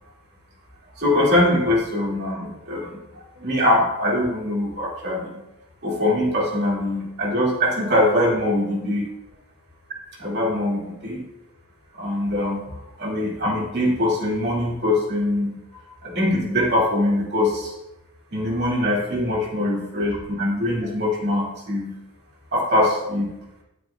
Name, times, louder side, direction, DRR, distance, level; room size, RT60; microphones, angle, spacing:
voice 1, 1.0-3.0 3.4-5.4 5.8-9.0 10.2-11.2 12.0-12.6 13.0-15.6 16.0-17.7 18.3-22.0 22.5-23.4, left 1 dB, 50° right, -3 dB, 2.3 m, -22 dB
10.5 x 9.4 x 2.3 m, 0.90 s
head